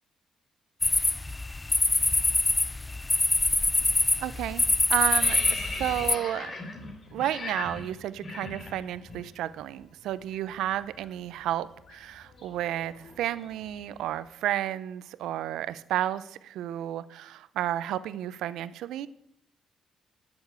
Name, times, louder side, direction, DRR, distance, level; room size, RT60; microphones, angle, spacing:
sound 1, 0.8-6.2, left 2 dB, 20° left, 0.4 m, -25 dB
sound 2, 3.7-4.0 4.3-9.2 9.5-9.7 10.0-14.1, left 3 dB, 45° left, 2.6 m, -40 dB
voice 1, 4.2-6.5 7.1-19.1, right 12 dB, 85° right, 16 dB, 0.6 m, -32 dB
11.5 x 7.1 x 8.0 m, 0.75 s
cardioid pair, 90°, 0 cm